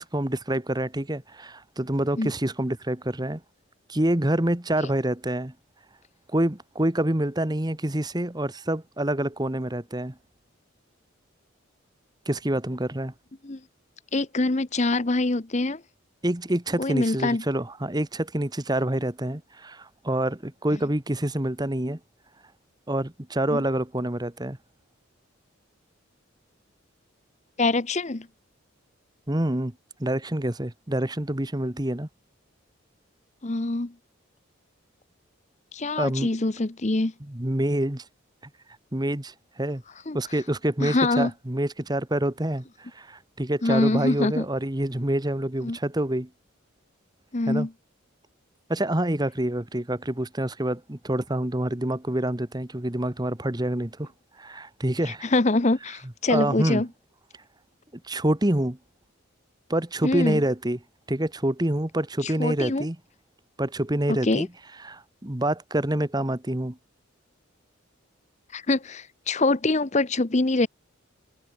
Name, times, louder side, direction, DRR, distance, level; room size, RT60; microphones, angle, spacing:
voice 1, 0.0-3.4 3.9-5.5 6.3-10.1 12.2-13.1 16.2-22.0 22.9-24.6 29.3-29.7 30.0-32.1 36.0-36.3 37.2-38.0 38.9-39.8 40.1-46.3 47.5-47.7 48.7-54.1 54.4-55.3 56.3-56.8 58.1-58.8 59.7-60.8 61.1-63.0 63.6-64.5 64.8-66.8, right 1 dB, 20° right, 1.4 m, -27 dB
voice 2, 14.1-15.8 16.8-17.4 23.5-23.6 27.6-28.3 33.4-33.9 35.7-37.1 40.1-40.2 40.8-41.3 43.6-44.4 45.6-45.8 47.3-47.7 55.1-56.9 60.0-60.4 62.2-62.8 64.1-64.5 68.5-70.7, left 2 dB, 35° left, 0.8 m, -24 dB
head